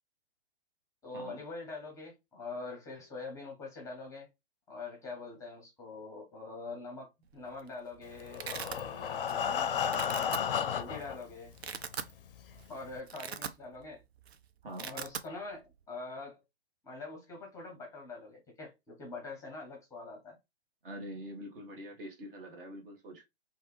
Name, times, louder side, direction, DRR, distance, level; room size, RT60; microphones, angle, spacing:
voice 1, 1.0-4.3 4.7-10.3 10.7-11.5 12.7-14.0 14.8-16.4 16.8-20.4, left 3 dB, 10° left, 0.7 m, -44 dB
Domestic sounds home sounds, 7.3-7.7 7.9-8.8 9.3-9.5 9.8-10.4 11.0-11.1 11.5-12.1 12.5-12.7 13.0-13.9 14.2-14.4 14.6-15.3, right 7 dB, 75° right, 0.5 m, -40 dB
Breathing, 8.2-11.2 11.9-12.0 12.4-12.5 12.9-13.0, left 8 dB, 55° left, 0.5 m, -33 dB
voice 2, 20.8-23.2, equal, 55° right, 1.3 m, -44 dB
3.1 x 2.3 x 3.0 m
figure-of-eight pair, 120°, 32 cm